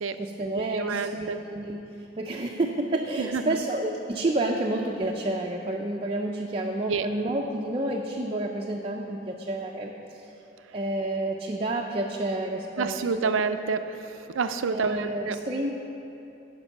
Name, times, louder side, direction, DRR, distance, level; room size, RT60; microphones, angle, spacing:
voice 1, 0.2-10.3 10.7-13.3 14.7-15.7, right 1 dB, 30° right, 0 dB, 0.4 m, -30 dB
voice 2, 0.7-1.4 3.2-3.6 6.9-7.1 12.8-14.0 14.3-15.4, right 5 dB, 90° right, 10 dB, 0.5 m, -28 dB
9.6 x 5.4 x 7.0 m, 2.8 s
head